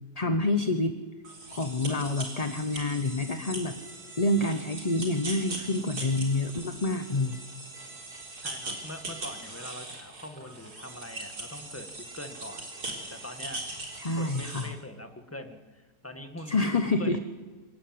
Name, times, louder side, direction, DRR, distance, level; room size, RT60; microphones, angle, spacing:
voice 1, 0.2-1.0 1.5-3.7 4.2-7.4 14.0-14.7 16.5-17.2, left 2 dB, 30° left, 9 dB, 1.0 m, -27 dB
sound 1, 1.2-14.7, right 2 dB, 80° right, 4.5 m, -40 dB
voice 2, 8.4-13.6 14.2-17.2, left 1 dB, 10° left, 6 dB, 1.7 m, -43 dB
26.0 x 15.0 x 9.5 m, 1.4 s
omnidirectional pair, 1.6 m